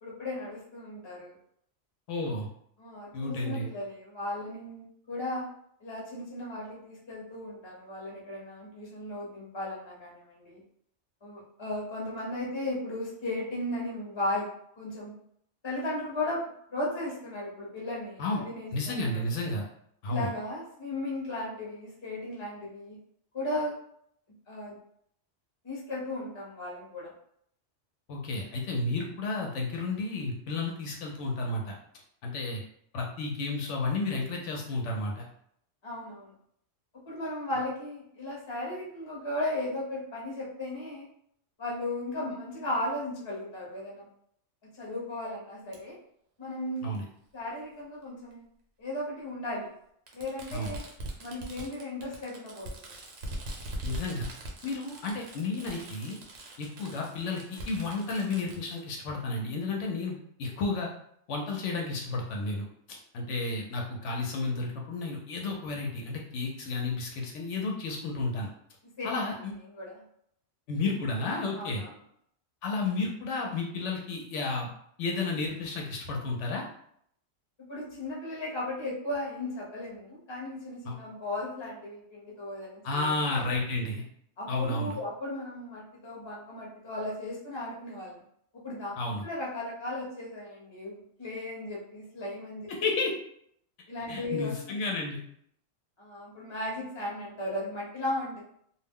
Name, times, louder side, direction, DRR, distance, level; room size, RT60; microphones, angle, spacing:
voice 1, 0.0-1.4 2.8-5.4 5.8-10.6 11.2-14.5 14.8-15.1 15.6-16.4 16.7-19.3 20.1-23.0 23.3-23.7 24.5-24.8 25.6-27.1 35.8-36.3 37.1-41.1 41.6-44.1 44.8-46.0 46.4-46.8 47.3-48.4 48.8-49.7 50.1-50.9 51.2-52.9 69.0-69.3 69.7-70.0 71.5-71.9 77.7-83.4 84.4-88.2 88.6-88.9 89.2-92.7 93.9-94.8 96.0-98.4, left 1 dB, 25° left, -4 dB, 0.7 m, -36 dB
voice 2, 2.1-2.5 3.1-3.7 18.2-18.4 18.7-19.6 20.0-20.3 28.1-31.7 32.2-32.6 32.9-35.3 46.8-47.0 50.5-50.7 53.8-54.3 54.6-56.2 56.6-60.9 61.3-62.6 63.1-68.5 69.0-69.5 70.7-71.8 72.6-74.7 75.0-76.6 80.8-81.0 82.8-84.0 84.5-85.0 89.0-89.2 92.7-93.1 94.1-95.2, left 3 dB, 75° left, 0 dB, 0.9 m, -32 dB
Fireworks, 45.7-45.8 47.0-47.1 48.3-48.4 50.1-58.8, right 1 dB, 75° right, 1.0 m, -41 dB
2.3 x 2.0 x 3.5 m, 0.68 s
omnidirectional pair, 1.3 m